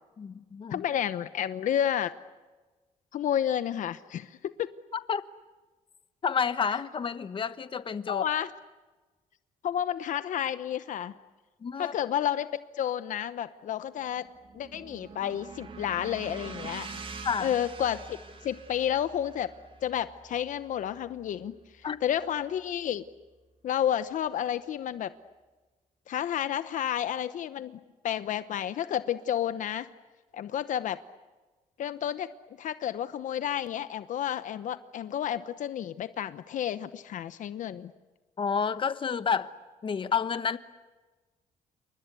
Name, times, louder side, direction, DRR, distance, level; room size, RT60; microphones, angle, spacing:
voice 1, 0.2-0.8 5.1-5.2 6.2-8.2 11.6-11.9 17.2-17.5 21.8-22.0 38.4-39.5 39.8-40.6, left 6 dB, 40° left, 12 dB, 1.2 m, -29 dB
voice 2, 0.7-2.1 3.1-4.7 8.1-8.5 9.6-11.1 11.8-12.5 12.7-14.3 14.5-16.9 17.4-18.2 18.4-19.5 19.8-23.0 23.6-25.1 26.1-29.9 30.3-31.0 31.8-32.3 32.6-37.9, left 10 dB, 70° left, 12 dB, 1.0 m, -31 dB
sound 1, 14.0-22.3, right 4 dB, 40° right, 2.1 m, -45 dB
28.5 x 24.5 x 8.3 m, 1.2 s
cardioid pair, 115°, 14 cm